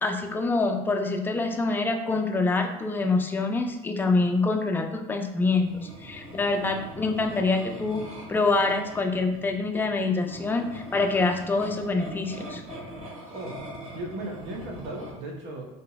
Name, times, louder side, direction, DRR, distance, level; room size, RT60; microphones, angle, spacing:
voice 1, 0.0-8.0 8.3-12.6, left 3 dB, 10° left, 4 dB, 0.4 m, -26 dB
sound 1, 5.4-15.1, equal, 35° right, 1.5 m, -42 dB
voice 2, 13.3-13.7 13.9-15.6, right 1 dB, 55° right, 0 dB, 0.8 m, -36 dB
3.8 x 2.7 x 2.2 m, 0.96 s
hypercardioid pair, 80°, 20 cm